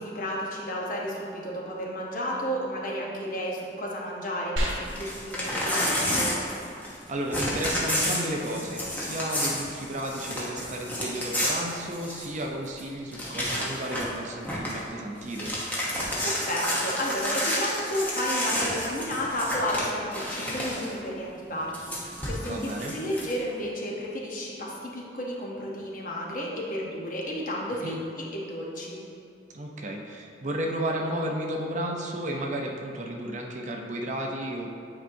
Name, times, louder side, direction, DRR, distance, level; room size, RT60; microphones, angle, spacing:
voice 1, 0.0-6.3 16.2-29.0, equal, 45° left, -3 dB, 0.9 m, -32 dB
sound 1, 4.6-14.6, equal, 65° right, 1.4 m, -41 dB
Crumpling crinkling / Tearing, 4.9-7.0 7.3-12.4 12.8-12.9 13.1-14.2 14.4-14.8 15.2-20.9 21.7-23.3, left 1 dB, 10° left, 0.9 m, -30 dB
voice 2, 7.1-15.5 22.5-23.0 27.8-28.0 29.5-34.7, right 1 dB, 40° right, 1 dB, 0.5 m, -33 dB
8.7 x 4.5 x 2.6 m, 2.4 s
head